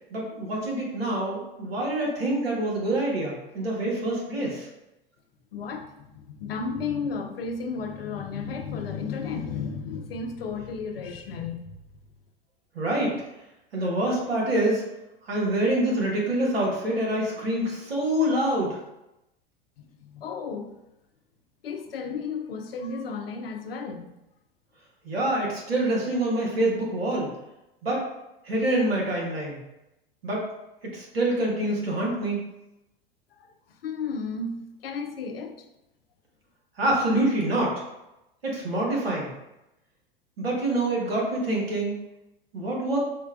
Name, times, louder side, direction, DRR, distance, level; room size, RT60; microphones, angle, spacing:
voice 1, 0.1-4.7 12.7-13.1 13.7-14.8 15.3-18.8 25.0-27.3 27.8-28.0 28.5-29.6 30.2-30.5 30.9-32.4 36.8-37.7 38.4-39.3 40.4-41.9 42.5-43.0, right 1 dB, 80° right, -3 dB, 1.2 m, -26 dB
voice 2, 5.5-5.9 6.3-11.6 20.0-20.7 21.6-24.1 33.8-35.5, left 5 dB, 75° left, 6 dB, 0.5 m, -33 dB
5.0 x 2.2 x 2.4 m, 0.91 s
figure-of-eight pair, 90°, 29 cm